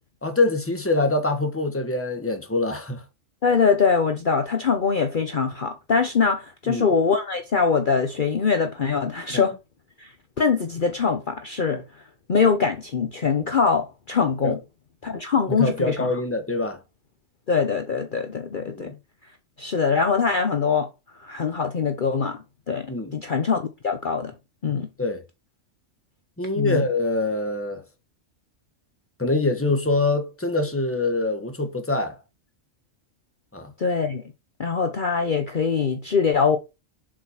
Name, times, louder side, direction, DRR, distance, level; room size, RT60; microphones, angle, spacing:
voice 1, 0.2-3.0 6.7-6.9 9.3-9.5 14.4-14.6 15.5-16.8 18.7-18.9 22.9-23.2 25.0-25.2 26.4-27.8 29.2-32.2 33.5-33.7, left 2 dB, 10° left, 1.3 m, -24 dB
voice 2, 3.4-9.5 10.0-10.1 10.4-11.8 12.3-14.6 15.0-16.1 17.5-18.9 19.6-20.9 21.2-22.9 23.1-24.3 24.6-24.9 26.6-26.8 33.8-34.2 34.6-36.6, left 5 dB, 45° left, 1.0 m, -23 dB
7.5 x 5.0 x 5.7 m
omnidirectional pair, 1.3 m